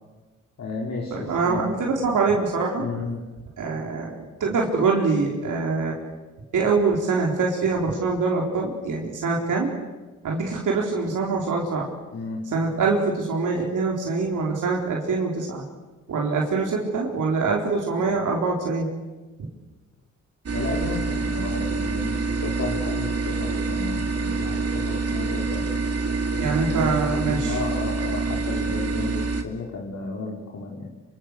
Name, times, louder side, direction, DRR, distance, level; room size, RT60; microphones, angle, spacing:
voice 1, 0.6-1.8 2.8-3.2 12.1-12.4 20.5-25.7 26.3-30.9, left 3 dB, 60° left, -2 dB, 4.3 m, -33 dB
voice 2, 1.1-2.8 3.6-6.0 6.5-9.7 10.2-11.9 12.5-15.6 16.1-18.9 26.4-27.5, right 4 dB, 85° right, -2 dB, 4.2 m, -24 dB
sound 1, 20.5-29.4, right 4 dB, 50° right, 2.3 m, -26 dB
26.0 x 26.0 x 6.8 m, 1.3 s
cardioid pair, 65°, 30 cm